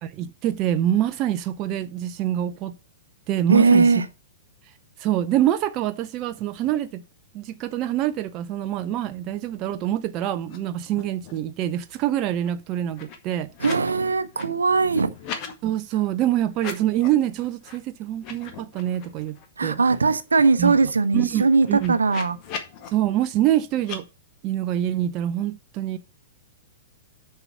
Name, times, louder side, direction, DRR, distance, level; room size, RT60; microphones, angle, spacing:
voice 1, 0.0-2.7 3.3-3.8 5.0-7.0 7.3-13.5 15.6-19.8 20.6-20.7 21.1-21.9 22.9-24.1 24.4-26.0, right 12 dB, 30° right, 0.5 m, -25 dB
voice 2, 3.5-4.1 13.6-15.1 19.6-22.4, right 4 dB, 70° right, 0.8 m, -20 dB
sound 1, 10.4-10.6 10.8-11.5 11.8-13.9 14.2-15.5 16.5-17.2 17.6-17.8 18.1-19.5 19.9-20.0 20.2-22.9 23.8-24.0, left 6 dB, 35° left, 1.7 m, -40 dB
6.8 x 5.5 x 6.9 m
figure-of-eight pair, 105°, 0 cm